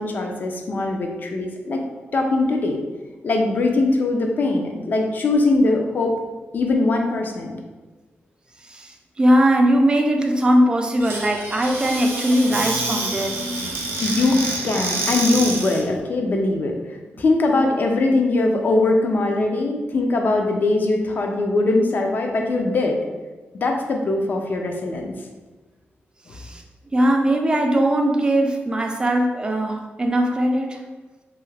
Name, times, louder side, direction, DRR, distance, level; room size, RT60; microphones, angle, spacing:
voice 1, 0.0-1.8 2.1-2.8 3.2-6.2 6.5-7.5 14.0-16.7 17.2-23.0 23.6-25.1 26.3-26.4, left 2 dB, 45° left, 2 dB, 0.4 m, -21 dB
voice 2, 8.7-13.4 26.3-26.6 26.9-30.8, right 1 dB, 20° right, 2 dB, 0.3 m, -20 dB
Squeak / Cupboard open or close, 11.0-15.9, right 2 dB, 75° right, 0.6 m, -27 dB
2.7 x 2.4 x 3.2 m, 1.2 s
wide cardioid pair, 135°, 4 cm